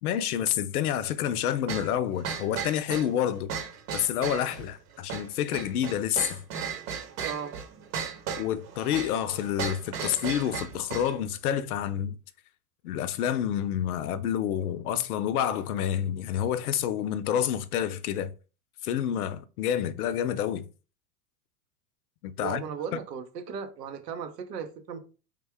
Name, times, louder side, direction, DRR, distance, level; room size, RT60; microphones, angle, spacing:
voice 1, 0.0-3.5 3.9-6.4 8.4-12.2 12.8-18.3 18.8-20.7 22.2-22.7, left 10 dB, 65° left, 0.6 m, -28 dB
sound 1, 1.7-11.2, right 7 dB, 55° right, 1.0 m, -36 dB
voice 2, 7.2-7.5 22.4-25.0, right 7 dB, 80° right, 0.8 m, -36 dB
3.5 x 2.2 x 3.4 m
hypercardioid pair, 100°, 48 cm